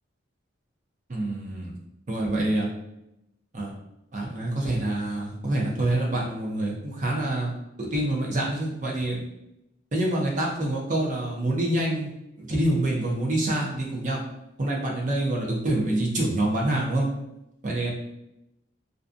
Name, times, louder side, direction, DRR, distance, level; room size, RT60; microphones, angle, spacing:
voice 1, 1.1-1.8 2.1-2.7 3.5-3.7 4.1-7.5 7.8-9.2 9.9-12.1 12.4-14.2 14.6-17.1 17.6-17.9, right 1 dB, 40° right, -2 dB, 0.5 m, -26 dB
2.5 x 2.2 x 2.4 m, 0.85 s
head